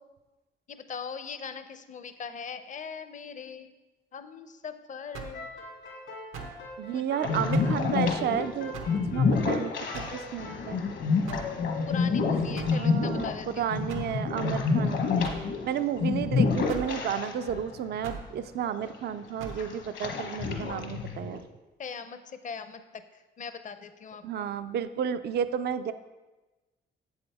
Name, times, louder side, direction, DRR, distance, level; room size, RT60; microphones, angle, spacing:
voice 1, 0.7-3.7 4.1-5.5 6.9-7.0 11.9-13.7 21.8-24.5, left 6 dB, 40° left, 10 dB, 0.6 m, -40 dB
sound 1, 5.1-5.5 6.3-6.6 7.5-7.8 8.7-9.0 9.9-10.2 11.3-11.6 12.6-12.8 13.9-14.1 15.2-15.5 16.7-16.9 18.0-18.3 19.4-19.6, right 5 dB, 85° right, 1.0 m, -40 dB
sound 2, 5.3-11.9, left 2 dB, 85° left, 2.8 m, -43 dB
voice 2, 6.8-8.7 9.1-10.8 12.2-12.3 12.7-15.3 15.6-21.4 24.2-25.9, right 8 dB, 55° right, 11 dB, 0.4 m, -32 dB
sound 3, 7.2-17.6 17.9-18.0 18.6-19.1 19.6-21.4, left 4 dB, 65° left, 1.2 m, -28 dB
7.9 x 7.6 x 3.5 m, 1.1 s
cardioid pair, 90°, 20 cm